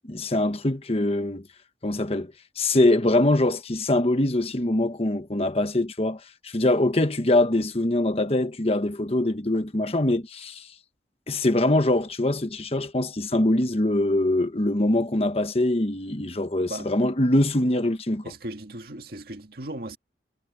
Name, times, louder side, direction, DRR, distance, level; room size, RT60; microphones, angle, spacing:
voice 1, 0.1-1.5 1.8-10.6 11.3-18.2, left 1 dB, 35° left, 1.2 m, -23 dB
voice 2, 18.2-20.0, right 1 dB, 60° right, 2.0 m, -37 dB
head